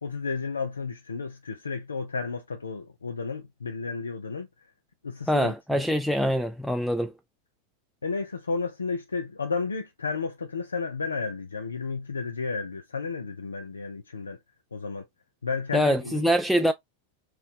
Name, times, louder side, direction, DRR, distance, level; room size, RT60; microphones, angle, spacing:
voice 1, 0.0-4.5 5.0-5.8 8.0-14.4 14.7-15.1 15.4-16.2, left 4 dB, 90° left, 0.4 m, -32 dB
voice 2, 5.3-7.1 15.7-16.7, equal, ahead, 0.3 m, -24 dB
3.0 x 2.2 x 3.3 m
hypercardioid pair, 95°, 0 cm